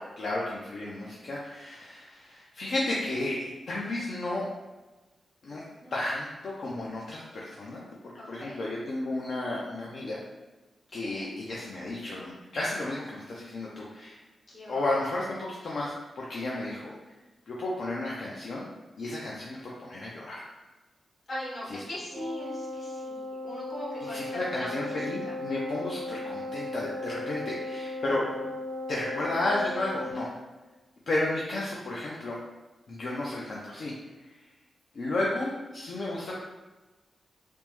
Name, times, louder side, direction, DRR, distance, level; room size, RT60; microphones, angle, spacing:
voice 1, 0.0-4.5 5.4-5.6 5.9-7.8 8.3-10.2 10.9-14.2 14.7-16.9 17.5-18.7 19.0-20.4 21.7-21.8 24.1-28.2 28.9-30.3 31.1-32.4 32.9-33.9 34.9-36.4, left 2 dB, 65° left, -5 dB, 0.4 m, -33 dB
voice 2, 5.5-5.9 8.2-8.6 10.9-11.3 14.5-14.9 21.3-25.0 25.2-25.4, left 1 dB, 40° left, -6 dB, 1.0 m, -40 dB
Wind instrument woodwind instrument, 22.1-30.3, left 2 dB, 55° right, 0.3 m, -37 dB
3.3 x 2.0 x 3.0 m, 1.2 s
wide cardioid pair, 125°, 0 cm